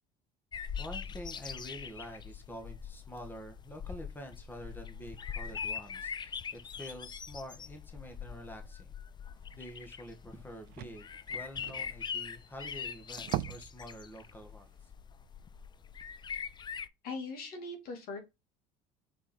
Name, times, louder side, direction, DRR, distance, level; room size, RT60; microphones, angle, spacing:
sound 1, 0.5-16.9, left 7 dB, 25° left, 0.5 m, -42 dB
voice 1, 0.8-8.9 9.5-14.7, equal, 10° left, 5 dB, 1.6 m, -47 dB
sound 2, 9.7-9.8 10.1-10.2 10.4-12.7 13.1-13.8 14.2-14.3 14.8-14.9, right 16 dB, 75° right, 0.4 m, -39 dB
voice 2, 17.0-18.2, left 3 dB, 65° left, 4 dB, 2.5 m, -40 dB
5.9 x 4.7 x 4.4 m, 0.24 s
supercardioid pair, 100°, 16 cm